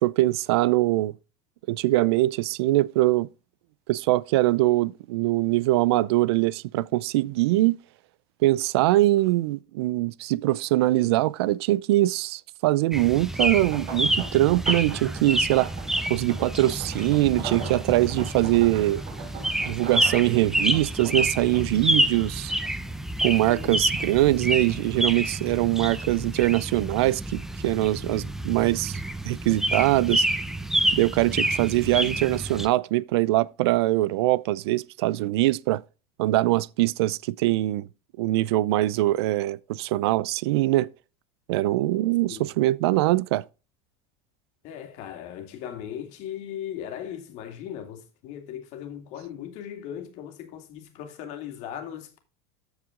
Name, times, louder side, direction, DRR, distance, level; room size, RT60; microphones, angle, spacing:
voice 1, 0.0-1.1 1.7-3.3 3.9-7.8 8.4-15.7 16.1-19.0 19.7-22.5 23.2-29.0 29.2-30.3 30.9-35.8 36.2-37.9 38.2-40.9 41.5-43.4, right 17 dB, 80° right, 0.5 m, -23 dB
sound 1, 12.9-32.7, right 1 dB, 5° right, 0.8 m, -28 dB
sound 2, 13.5-23.0 23.3-24.3 24.7-26.0 26.8-27.1 27.5-27.6, right 4 dB, 60° right, 4.8 m, -41 dB
voice 2, 23.5-23.8 42.3-42.5 44.6-52.2, left 10 dB, 60° left, 2.4 m, -38 dB
13.5 x 4.8 x 3.8 m
supercardioid pair, 115°, 13 cm